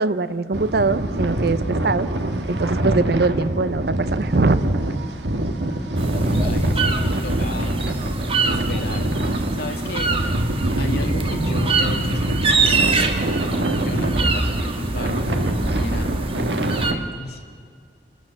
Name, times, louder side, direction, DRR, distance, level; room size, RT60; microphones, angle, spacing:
voice 1, 0.0-2.1 2.5-4.6, right 3 dB, 60° right, 15 dB, 0.7 m, -22 dB
sound 1, 0.5-16.9, right 1 dB, 80° right, 1.5 m, -24 dB
voice 2, 5.6-8.1 8.4-10.1 10.8-13.1 13.4-17.6, left 1 dB, 60° left, 3 dB, 2.2 m, -34 dB
sound 2, 6.0-16.9, right 4 dB, 30° right, 1.5 m, -25 dB
29.0 x 13.5 x 7.6 m, 2.2 s
head